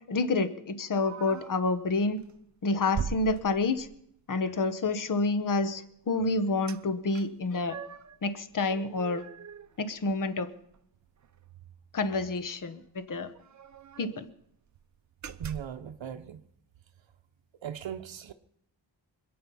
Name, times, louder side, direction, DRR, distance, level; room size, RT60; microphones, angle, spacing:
voice 1, 0.1-2.2 2.6-3.9 4.3-7.8 8.2-9.3 9.8-10.5 11.9-13.3 14.0-14.3, left 3 dB, 45° left, 1.0 m, -28 dB
sound 1, 1.0-1.7 2.2-2.4 2.9-4.1 6.7-6.8 7.1-8.2 8.6-10.4 10.7-10.8 11.2-11.4 12.5-12.6 12.8-12.9 13.3-14.2 14.7-14.8 15.2-15.8, right 7 dB, 40° right, 0.6 m, -41 dB
voice 2, 15.4-16.4 17.6-18.3, right 9 dB, 75° right, 0.8 m, -38 dB
26.5 x 8.8 x 5.4 m
wide cardioid pair, 155°, 45 cm